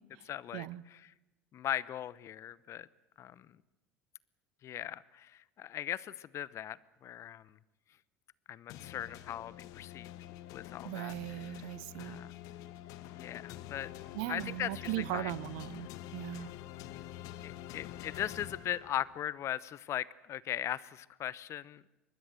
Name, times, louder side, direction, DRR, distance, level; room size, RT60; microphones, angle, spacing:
voice 1, 0.3-1.1 1.5-2.9 3.2-3.5 4.6-7.5 8.5-10.1 10.5-11.7 12.0-12.3 13.1-13.9 14.3-15.3 16.3-16.4 17.4-21.8, left 11 dB, 45° left, 0.9 m, -39 dB
sound 1, 8.7-19.3, left 13 dB, 60° left, 1.3 m, -47 dB
voice 2, 10.8-12.2 14.1-16.5, right 18 dB, 65° right, 0.8 m, -38 dB
25.0 x 21.0 x 7.8 m
hypercardioid pair, 75°, 7 cm